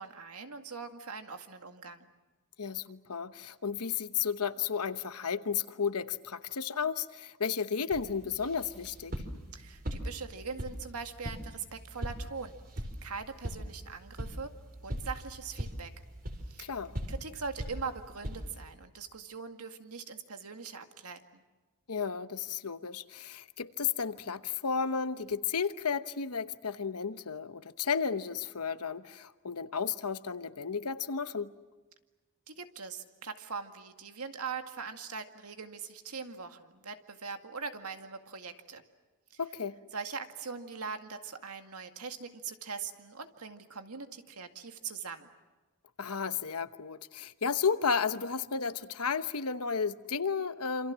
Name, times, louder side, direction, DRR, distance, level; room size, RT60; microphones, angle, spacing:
voice 1, 0.0-2.1 9.5-14.5 14.8-15.9 16.5-16.7 17.1-21.4 32.5-38.8 39.3-39.4 39.9-45.3, right 5 dB, 85° right, 2.1 m, -41 dB
voice 2, 2.6-9.1 16.6-16.9 21.9-31.5 39.4-39.8 46.0-50.9, left 6 dB, 85° left, 1.1 m, -33 dB
sound 1, 7.9-18.7, equal, 40° right, 3.9 m, -41 dB
27.5 x 27.0 x 7.5 m
head